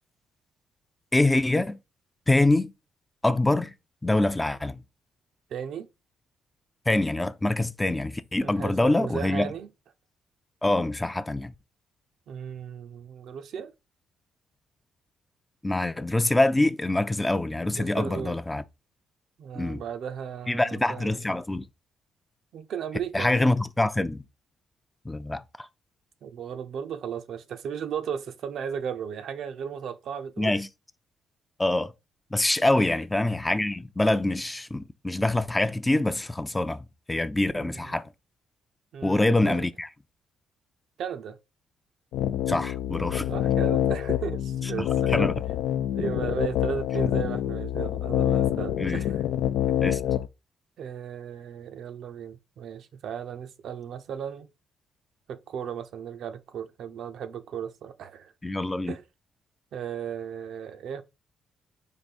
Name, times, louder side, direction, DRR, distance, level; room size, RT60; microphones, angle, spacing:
voice 1, 1.1-1.8 2.3-2.7 3.2-3.7 4.0-4.8 6.9-9.5 10.6-11.5 15.6-18.6 19.6-19.8 20.5-21.6 23.1-24.2 25.1-25.7 30.4-30.7 31.6-31.9 32.3-38.1 39.0-39.9 42.5-43.3 45.1-45.3 48.8-49.0 49.8-50.0 58.4-59.0, left 2 dB, 15° left, 0.4 m, -25 dB
voice 2, 5.5-5.9 8.4-9.7 12.3-13.7 17.7-18.4 19.4-21.2 22.5-23.5 26.2-30.6 32.8-33.0 37.5-38.0 38.9-39.7 41.0-41.4 43.3-45.3 45.9-49.2 49.7-49.8 50.8-54.5 55.3-58.3 58.8-59.0 59.7-61.0, right 8 dB, 70° right, 0.5 m, -35 dB
sound 1, 42.1-50.3, left 11 dB, 85° left, 0.3 m, -26 dB
4.8 x 2.6 x 4.1 m
cardioid pair, 90°, 0 cm